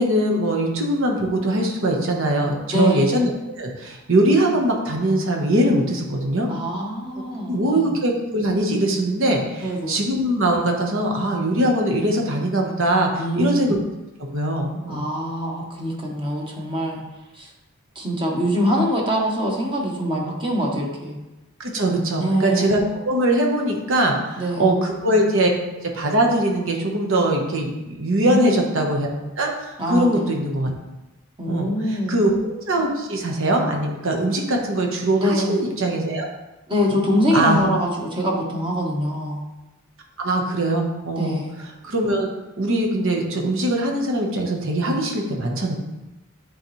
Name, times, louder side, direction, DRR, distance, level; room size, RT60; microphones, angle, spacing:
voice 1, 0.0-3.3 3.6-6.5 7.5-13.8 14.3-15.1 21.6-22.8 23.0-25.5 25.8-29.1 29.4-30.7 31.5-36.3 36.9-37.0 37.3-37.6 40.2-41.4 41.8-42.3 42.6-45.7, right 1 dB, 65° right, 0 dB, 1.2 m, -21 dB
voice 2, 2.7-3.2 6.5-7.9 9.6-10.0 13.2-13.8 14.9-17.0 17.3-17.5 17.9-21.2 22.2-22.8 24.4-24.7 28.2-28.6 29.8-30.3 31.4-32.2 35.2-35.6 36.7-39.4 41.2-41.6, equal, 25° right, -2 dB, 1.2 m, -24 dB
9.5 x 4.0 x 3.2 m, 1.0 s
head